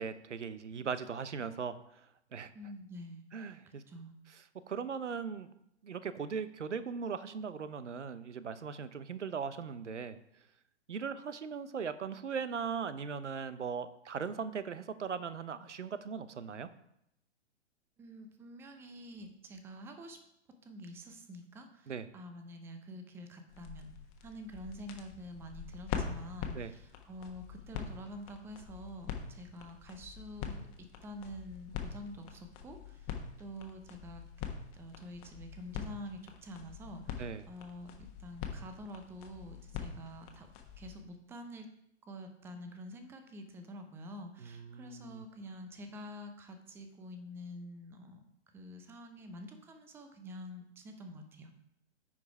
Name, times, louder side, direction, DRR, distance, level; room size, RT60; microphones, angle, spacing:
voice 1, 0.0-2.1 2.3-2.5 3.3-3.8 4.7-5.5 5.8-10.2 10.9-16.7 21.9-22.1 26.5-26.7 37.2-37.4 44.4-45.2, right 6 dB, 80° right, 14 dB, 0.8 m, -39 dB
voice 2, 2.5-3.3 3.9-4.1 18.0-20.2 20.6-23.9 24.2-34.2 34.7-40.5 40.8-41.7 42.0-51.5, equal, 5° right, 6 dB, 0.6 m, -47 dB
sound 1, 23.5-41.0, left 7 dB, 30° left, 1.3 m, -44 dB
9.5 x 4.9 x 4.7 m, 0.78 s
figure-of-eight pair, 120°, 35 cm